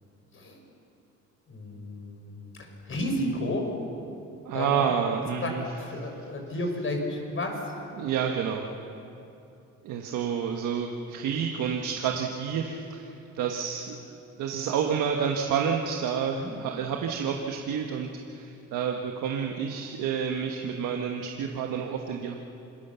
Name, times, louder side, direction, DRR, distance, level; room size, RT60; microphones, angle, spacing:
voice 1, 1.5-3.7 4.5-4.9 5.4-7.7 16.3-16.5, left 1 dB, 45° left, 3 dB, 5.6 m, -32 dB
voice 2, 4.4-5.6 8.0-8.7 9.8-22.4, right 7 dB, 90° right, 2 dB, 1.5 m, -29 dB
27.0 x 20.0 x 7.0 m, 2.8 s
cardioid pair, 90°, 30 cm